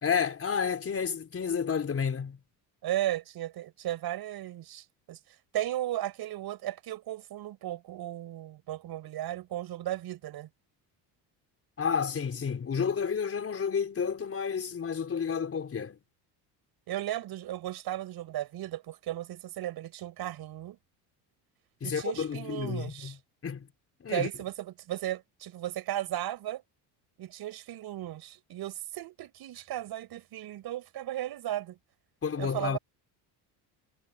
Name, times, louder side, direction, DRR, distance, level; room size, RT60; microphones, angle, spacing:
voice 1, 0.0-2.4 11.8-16.0 21.8-23.2 23.4-23.7 24.0-24.3 32.2-32.8, left 6 dB, 35° left, 5.2 m, -30 dB
voice 2, 2.8-5.2 5.5-10.5 16.9-20.8 21.8-23.2 24.1-26.6 27.2-31.8 32.4-32.8, right 13 dB, 60° right, 5.9 m, -35 dB
cardioid pair, 115°, 42 cm